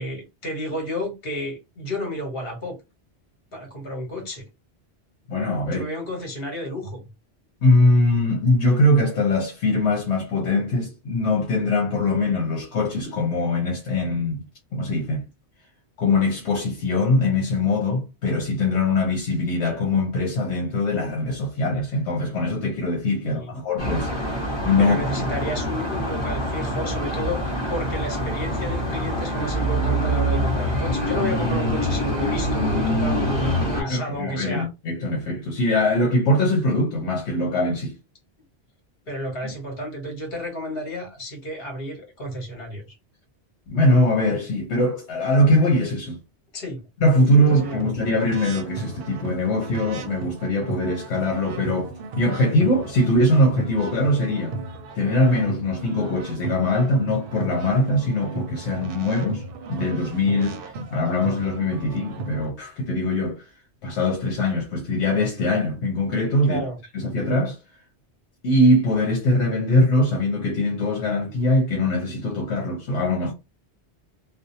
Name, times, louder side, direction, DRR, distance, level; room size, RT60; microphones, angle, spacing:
voice 1, 0.0-2.8 3.5-4.4 5.6-7.0 23.2-23.5 24.8-27.4 27.7-34.7 39.1-43.0 46.5-46.8 47.3-47.9 66.4-66.8, equal, 60° left, 1.4 m, -31 dB
voice 2, 5.3-5.9 7.6-14.4 14.7-15.2 16.0-25.3 33.7-37.9 43.7-46.2 47.0-54.6 54.9-63.4 63.8-66.6 66.9-67.6 68.4-73.3, left 1 dB, 80° left, 1.0 m, -22 dB
sound 1, 23.8-33.8, equal, 25° left, 1.2 m, -25 dB
sound 2, 47.5-62.5, right 3 dB, 65° right, 0.7 m, -35 dB
2.6 x 2.0 x 2.7 m
omnidirectional pair, 1.1 m